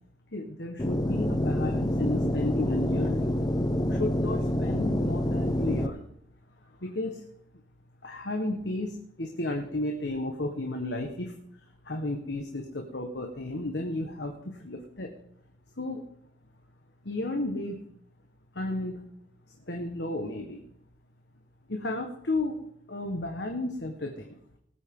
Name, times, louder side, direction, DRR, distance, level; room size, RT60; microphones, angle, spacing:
voice 1, 0.3-3.3 3.8-6.0 6.8-7.2 8.0-11.3 11.8-15.1 15.8-16.0 17.0-17.8 18.5-19.0 19.7-20.6 21.7-22.6 22.9-24.4, left 2 dB, 70° left, 3 dB, 1.4 m, -33 dB
sound 1, 0.8-5.9, left 1 dB, 20° left, 0.7 m, -27 dB
19.5 x 8.8 x 3.8 m, 0.73 s
head